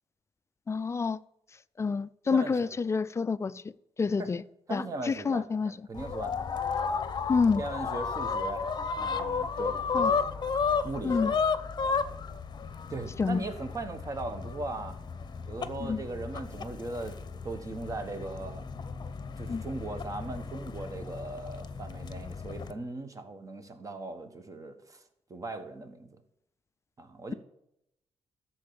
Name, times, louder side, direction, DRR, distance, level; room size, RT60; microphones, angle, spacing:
voice 1, 0.7-1.2 1.8-3.7 4.0-4.4 4.7-5.8 7.3-7.6 9.9-10.1 11.0-11.3 13.2-13.5 15.8-16.0 19.5-19.6, left 5 dB, 25° left, 0.4 m, -28 dB
voice 2, 2.3-2.7 4.2-4.3 4.7-6.3 7.6-8.7 9.0-10.2 10.8-11.4 12.9-15.0 15.5-17.2 17.4-18.7 19.4-25.0 25.3-26.1 27.0-27.3, right 2 dB, 35° right, 1.4 m, -38 dB
sound 1, 6.0-22.7, left 5 dB, 45° left, 0.7 m, -33 dB
13.5 x 4.5 x 7.0 m
cardioid pair, 110°, 10 cm